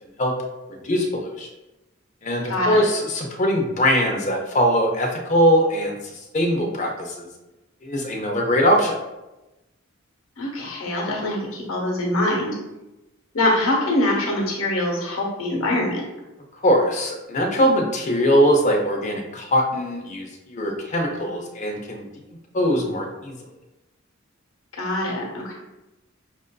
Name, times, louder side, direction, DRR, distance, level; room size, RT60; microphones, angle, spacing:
voice 1, 0.7-1.5 2.2-5.9 6.3-7.3 7.8-8.9 16.6-22.0 22.5-23.4, equal, 35° left, 1 dB, 0.6 m, -21 dB
voice 2, 2.5-2.8 10.4-12.6 13.3-16.0 24.8-25.5, left 1 dB, 85° left, -2 dB, 1.1 m, -23 dB
6.0 x 2.6 x 2.2 m, 1.0 s
head